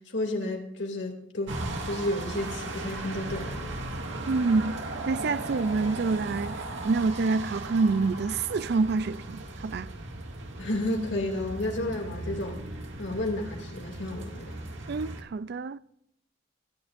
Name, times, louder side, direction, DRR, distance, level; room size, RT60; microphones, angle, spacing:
voice 1, 0.1-3.8 10.6-12.6 13.0-14.6, left 1 dB, 70° left, 2.7 m, -32 dB
sound 1, 1.5-15.2, right 2 dB, 70° right, 2.2 m, -37 dB
voice 2, 4.3-4.8 5.1-9.9 14.9-15.8, right 4 dB, 55° right, 0.4 m, -27 dB
22.0 x 10.5 x 2.6 m
head